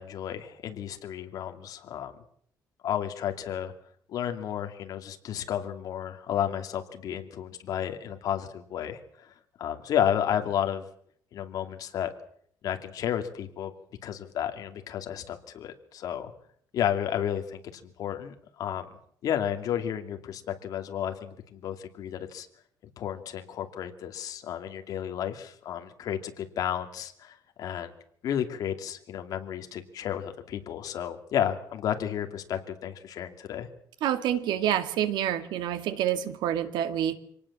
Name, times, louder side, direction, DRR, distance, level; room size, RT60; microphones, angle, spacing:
voice 1, 0.0-2.1 2.8-3.7 4.1-9.0 9.6-10.8 11.3-12.1 12.6-13.7 14.0-16.3 16.7-18.9 19.2-22.5 23.0-27.9 28.2-33.7, left 10 dB, 50° left, 6 dB, 2.7 m, -32 dB
voice 2, 34.0-37.2, right 10 dB, 70° right, 11 dB, 2.0 m, -27 dB
26.5 x 18.5 x 7.5 m, 0.65 s
cardioid pair, 175°, 8 cm